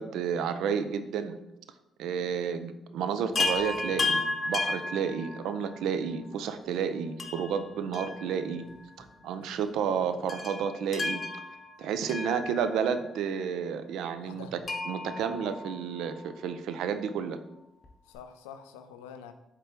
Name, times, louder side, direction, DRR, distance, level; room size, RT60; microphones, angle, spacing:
voice 1, 0.0-1.4 2.0-8.7 9.0-11.2 11.8-14.6 14.9-17.4, right 7 dB, 75° right, 10 dB, 0.3 m, -31 dB
Chime, 3.4-5.8 7.2-8.7 9.0-9.1 10.3-13.0 14.7-16.3 17.8-17.9 18.2-18.3, left 3 dB, 40° left, 0.7 m, -33 dB
voice 2, 9.2-9.7 14.2-14.5 18.0-19.3, left 7 dB, 90° left, 9 dB, 0.3 m, -47 dB
4.7 x 3.3 x 3.0 m, 0.91 s
hypercardioid pair, 50°, 0 cm